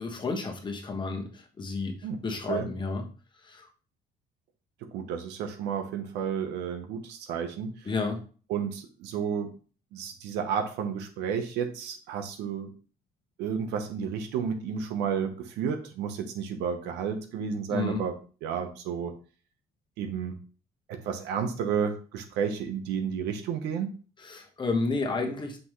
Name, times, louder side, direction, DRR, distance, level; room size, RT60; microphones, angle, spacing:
voice 1, 0.0-2.0 2.2-3.0 3.4-3.6 7.8-8.2 17.7-18.1 24.2-25.6, left 3 dB, 25° left, 3 dB, 1.3 m, -31 dB
voice 2, 4.9-7.7 8.5-9.5 9.9-12.7 13.4-18.1 18.4-19.1 20.0-20.3 20.9-23.9, right 7 dB, 90° right, 7 dB, 1.1 m, -31 dB
5.9 x 5.3 x 3.2 m, 0.38 s
cardioid pair, 110°, 17 cm